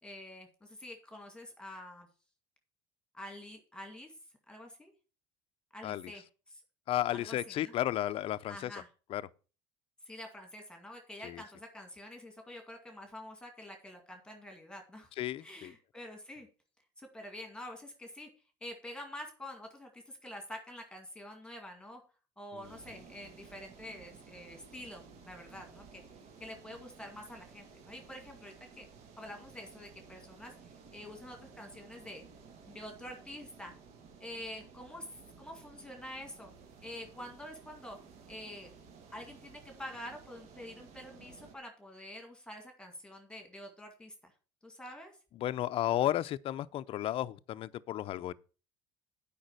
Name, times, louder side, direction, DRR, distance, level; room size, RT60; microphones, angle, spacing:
voice 1, 0.0-2.1 3.1-4.1 4.5-4.9 5.7-6.6 7.1-7.7 8.5-8.9 10.1-15.1 15.4-16.5 17.0-18.3 18.6-22.0 22.4-26.0 26.4-28.9 29.2-32.2 32.7-33.7 34.2-36.5 36.8-38.0 38.3-38.7 39.1-44.3 44.6-45.1, left 1 dB, 5° left, 2.1 m, -47 dB
voice 2, 6.9-8.7 9.1-9.2 11.2-11.4 15.2-15.7 45.4-48.3, left 13 dB, 45° left, 0.5 m, -33 dB
sound 1, 22.6-41.6, right 5 dB, 55° right, 1.7 m, -55 dB
8.8 x 5.3 x 6.6 m
supercardioid pair, 120°, 13 cm